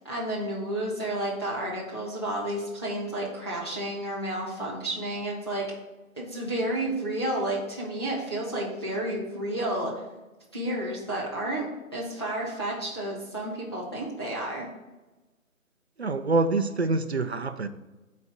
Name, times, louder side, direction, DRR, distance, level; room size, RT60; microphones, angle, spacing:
voice 1, 0.0-5.7 6.2-9.9 10.5-14.7, right 1 dB, 20° left, 0.7 m, -31 dB
voice 2, 16.0-17.7, right 3 dB, 50° right, 0.5 m, -26 dB
10.5 x 4.2 x 3.5 m
figure-of-eight pair, 165°, 43 cm